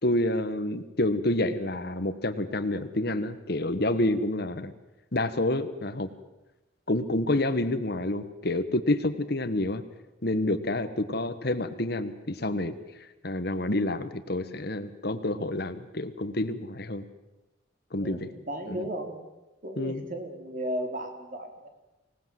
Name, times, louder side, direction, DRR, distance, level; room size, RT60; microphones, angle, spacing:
voice 1, 0.0-4.7 5.1-6.1 6.9-9.8 10.2-12.7 13.2-17.0 17.9-18.3 18.7-18.8 19.8-20.0, left 1 dB, 55° left, 11 dB, 1.4 m, -28 dB
voice 2, 18.0-19.2 19.6-21.7, right 1 dB, 45° right, 4 dB, 3.7 m, -35 dB
25.5 x 18.5 x 7.7 m, 1.0 s
head